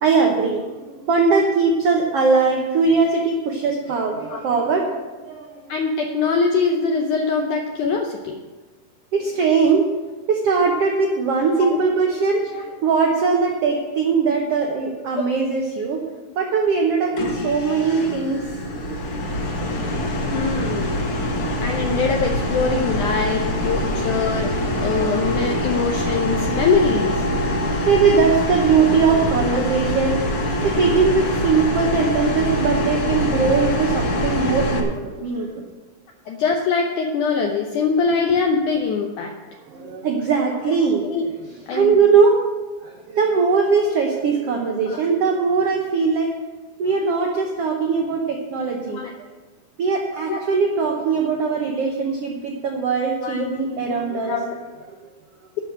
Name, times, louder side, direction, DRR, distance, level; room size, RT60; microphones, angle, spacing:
voice 1, 0.0-5.6 9.1-9.9 10.3-16.0 16.4-18.5 19.8-19.9 23.7-24.2 24.7-25.7 27.4-30.3 30.6-35.6 39.7-41.1 41.7-42.4 42.8-46.3 46.8-49.1 49.8-54.4 54.9-55.0, right 5 dB, 85° right, 1 dB, 1.3 m, -20 dB
voice 2, 5.7-8.4 11.6-11.8 12.5-12.6 20.3-21.0 21.6-24.5 24.8-27.2 35.2-35.3 36.3-39.3 41.1-41.2 41.7-42.0 44.9-45.0 48.9-49.1 50.3-50.4 53.2-54.5, left 4 dB, 70° left, 2 dB, 2.0 m, -23 dB
sound 1, 17.2-34.8, left 1 dB, 55° left, 1.7 m, -24 dB
11.0 x 6.3 x 8.5 m, 1.3 s
omnidirectional pair, 4.2 m